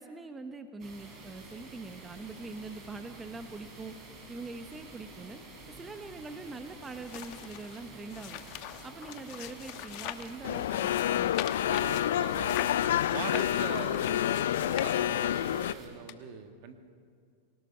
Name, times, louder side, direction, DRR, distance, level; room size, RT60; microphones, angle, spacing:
voice 1, 0.0-3.9 4.3-5.4 5.7-8.4 8.8-11.3, right 3 dB, 15° right, 8 dB, 0.9 m, -43 dB
sound 1, 0.8-15.9, right 2 dB, 35° right, 5.5 m, -49 dB
sound 2, 6.8-10.4 10.7-15.4 16.1-16.2, left 14 dB, 55° left, 1.1 m, -42 dB
sound 3, 10.4-15.7, left 11 dB, 75° left, 0.4 m, -28 dB
voice 2, 11.6-16.8, right 7 dB, 55° right, 7 dB, 1.9 m, -42 dB
25.0 x 18.5 x 5.6 m, 2.2 s
hypercardioid pair, 120°, 0 cm